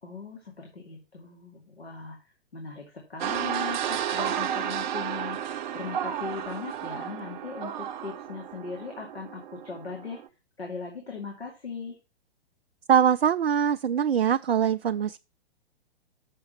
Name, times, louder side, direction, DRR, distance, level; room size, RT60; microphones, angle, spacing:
voice 1, 0.0-10.2 10.6-12.0, left 5 dB, 85° left, 2.4 m, -39 dB
sound 1, 3.2-10.3, right 9 dB, 50° right, 0.8 m, -32 dB
voice 2, 12.9-15.2, right 8 dB, 80° right, 0.5 m, -23 dB
6.6 x 6.3 x 5.5 m
figure-of-eight pair, 115°, 31 cm